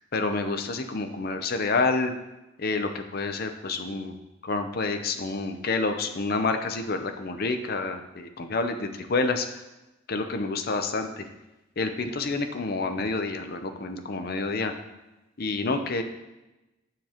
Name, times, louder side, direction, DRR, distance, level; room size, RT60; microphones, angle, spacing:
voice 1, 0.1-2.1 2.6-4.1 4.4-9.6 10.1-11.2 11.8-14.7 15.4-16.0, left 3 dB, 50° left, 7 dB, 0.6 m, -28 dB
9.0 x 6.9 x 2.9 m, 1.0 s
head